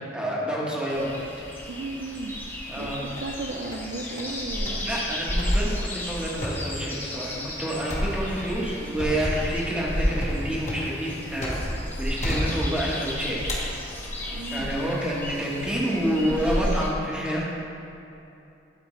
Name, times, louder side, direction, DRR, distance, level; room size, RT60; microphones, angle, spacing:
voice 1, 0.1-1.1 2.7-3.0 4.8-11.7 12.0-13.4 14.5-17.4, equal, 5° right, -5 dB, 1.1 m, -28 dB
sound 1, 0.9-16.9, equal, 10° left, 0.6 m, -32 dB
voice 2, 1.7-2.3 2.8-4.9 14.3-14.7 15.9-16.5, right 3 dB, 65° right, 0 dB, 0.4 m, -34 dB
sound 2, 2.5-3.4 3.7-4.4 4.7-4.9 5.4-11.9 12.2-13.1 13.5-14.4 15.0-15.4, equal, 40° left, 1.2 m, -34 dB
11.5 x 4.4 x 3.1 m, 2.8 s
head